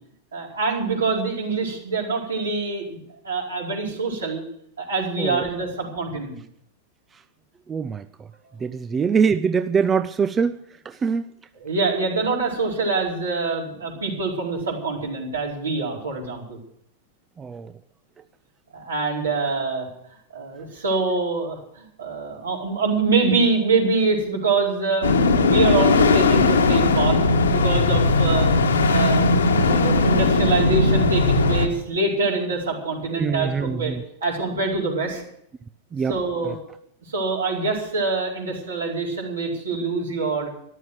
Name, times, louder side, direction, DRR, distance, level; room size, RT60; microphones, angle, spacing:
voice 1, 0.3-4.4 4.8-6.4 11.5-16.6 18.7-19.9 20.3-25.1 25.4-27.2 27.5-28.5 28.9-29.2 29.6-33.9 34.2-35.2 36.1-36.6 37.1-40.5, right 3 dB, 75° right, -2 dB, 4.6 m, -25 dB
voice 2, 5.2-5.5 7.7-8.0 8.6-10.6 10.8-11.3 17.4-17.7 33.2-34.0 35.9-36.2, right 6 dB, 20° right, 11 dB, 0.5 m, -23 dB
sound 1, 25.0-31.7, left 3 dB, 75° left, 1.6 m, -18 dB
14.0 x 12.0 x 6.3 m, 0.73 s
figure-of-eight pair, 95°, 0 cm